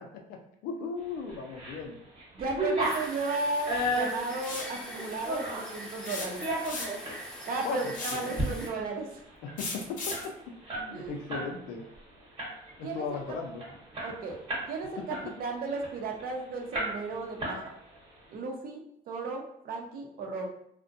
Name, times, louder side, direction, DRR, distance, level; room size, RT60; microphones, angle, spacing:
voice 1, 0.3-2.0 7.6-8.4 9.4-10.2 10.7-11.8 12.8-13.6, left 5 dB, 80° left, 3 dB, 0.5 m, -37 dB
sound 1, 1.3-1.8 2.1-5.7 6.2-7.2 7.6-7.8 8.2-8.5 8.8-8.9 9.2-11.5 11.8-12.0 12.4-12.8 13.3-13.4 13.6-14.7 15.1-16.3 16.7-17.1 17.4-18.0, right 1 dB, 30° right, 1.0 m, -33 dB
voice 2, 2.3-6.4 7.5-9.2 10.9-11.1 12.8-13.2 14.0-14.4 14.7-17.7 18.3-20.5, right 3 dB, 60° right, 2 dB, 0.6 m, -35 dB
sound 2, 2.8-8.7, equal, 5° left, 0.6 m, -43 dB
sound 3, 4.4-4.8 6.0-7.1 7.9-8.3 9.6-10.3, left 3 dB, 55° left, 0.7 m, -36 dB
2.5 x 2.1 x 2.5 m, 0.74 s
cardioid pair, 90°, 16 cm